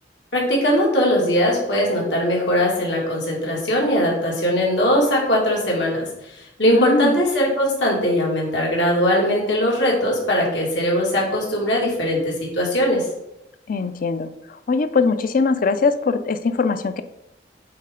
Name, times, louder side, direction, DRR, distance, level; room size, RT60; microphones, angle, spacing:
voice 1, 0.3-6.1 6.6-13.0, equal, 80° left, -3 dB, 2.4 m, -20 dB
voice 2, 6.7-7.2 13.7-17.0, left 4 dB, 50° left, 12 dB, 0.5 m, -21 dB
8.5 x 4.1 x 3.8 m, 0.85 s
head